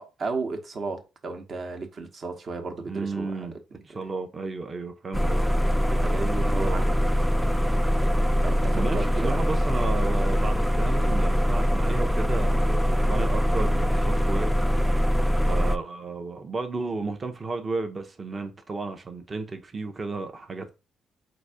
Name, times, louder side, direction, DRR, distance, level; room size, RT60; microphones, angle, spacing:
voice 1, 0.0-3.5 5.8-6.8 7.2-7.3 8.4-9.4, right 3 dB, 50° right, 1.1 m, -34 dB
voice 2, 2.9-5.4 6.5-6.9 8.7-14.5 14.9-15.0 15.4-20.7, right 3 dB, 30° right, 0.8 m, -33 dB
sound 1, 5.1-15.8, equal, ahead, 0.4 m, -23 dB
4.0 x 2.6 x 4.8 m
cardioid pair, 90°, 0 cm